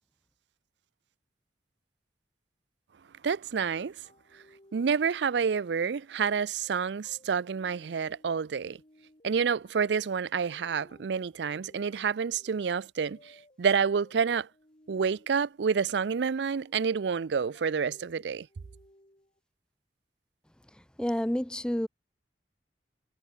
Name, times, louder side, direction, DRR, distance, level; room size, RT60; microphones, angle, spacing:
voice 1, 3.2-3.9 4.7-8.8 9.2-14.5 14.9-18.5, right 6 dB, 80° right, 0.4 m, -28 dB
sound 1, 4.0-19.4, left 1 dB, 35° left, 2.5 m, -60 dB
voice 2, 21.0-21.9, equal, 5° left, 0.5 m, -29 dB
head